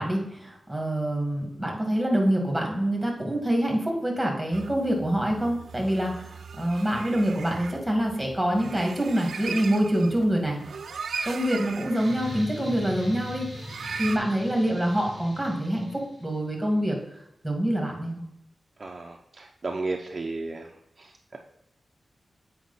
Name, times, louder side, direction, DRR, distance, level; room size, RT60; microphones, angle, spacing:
voice 1, 0.0-10.6 11.2-13.5 14.0-17.0 17.4-18.2, right 1 dB, 5° right, 0 dB, 2.1 m, -26 dB
sound 1, 4.5-14.2, right 5 dB, 85° right, 0.5 m, -39 dB
sound 2, 11.9-16.4, equal, 45° left, 2.7 m, -40 dB
voice 2, 18.8-21.4, right 3 dB, 40° right, 2 dB, 0.6 m, -34 dB
8.0 x 5.1 x 4.1 m, 0.79 s
wide cardioid pair, 130°, 0 cm